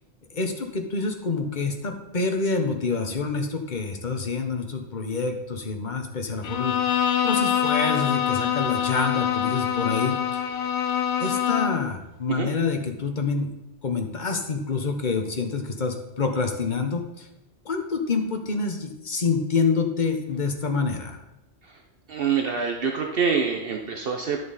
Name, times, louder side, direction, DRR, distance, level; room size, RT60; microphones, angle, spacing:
voice 1, 0.3-6.8 7.2-10.4 11.2-13.5 13.8-17.3 17.6-21.2, left 4 dB, 45° left, 4 dB, 1.2 m, -27 dB
Bowed string instrument, 6.4-11.9, left 9 dB, 80° left, 1.0 m, -25 dB
voice 2, 22.1-24.4, right 6 dB, 60° right, 2 dB, 1.0 m, -26 dB
11.0 x 6.7 x 4.1 m, 0.94 s
omnidirectional pair, 1.1 m